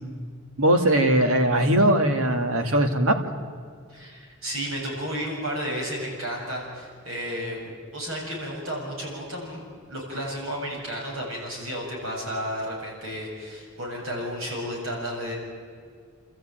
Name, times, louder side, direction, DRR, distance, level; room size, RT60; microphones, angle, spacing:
voice 1, 0.6-3.2, right 1 dB, 85° right, 5 dB, 2.3 m, -20 dB
voice 2, 3.9-15.4, equal, 70° right, -2 dB, 7.6 m, -32 dB
28.0 x 14.0 x 9.1 m, 2.1 s
head